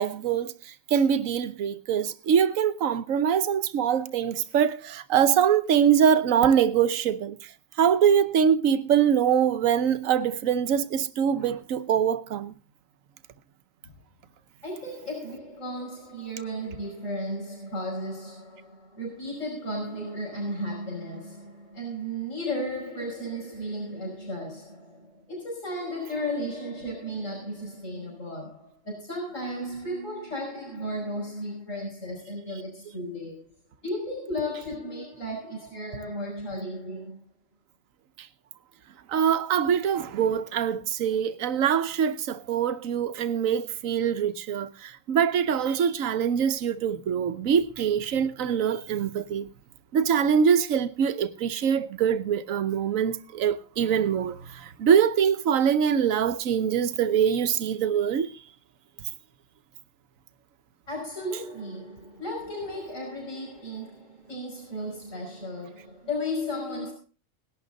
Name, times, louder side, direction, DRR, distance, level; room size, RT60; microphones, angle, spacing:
voice 1, 0.0-7.5 7.8-12.5 38.2-38.3 39.1-49.5 49.9-58.3, right 8 dB, 75° right, 1.3 m, -24 dB
voice 2, 14.6-33.4 33.8-37.2 60.9-66.9, equal, 65° left, 6.0 m, -34 dB
18.5 x 11.5 x 3.9 m
omnidirectional pair, 1.4 m